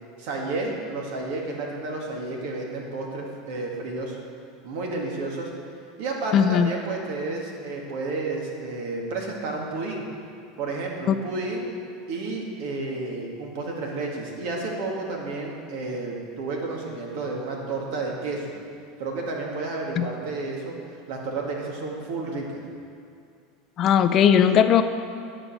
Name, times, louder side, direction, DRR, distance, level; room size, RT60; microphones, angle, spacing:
voice 1, 0.2-4.2 4.6-5.5 6.0-10.1 10.6-11.7 12.1-18.5 19.0-20.8 21.1-22.6, right 3 dB, 70° right, -1 dB, 2.0 m, -31 dB
voice 2, 6.3-6.7 20.0-20.1 23.8-24.8, left 8 dB, 40° left, 9 dB, 0.5 m, -18 dB
9.8 x 5.0 x 7.5 m, 2.4 s
supercardioid pair, 120°, 0 cm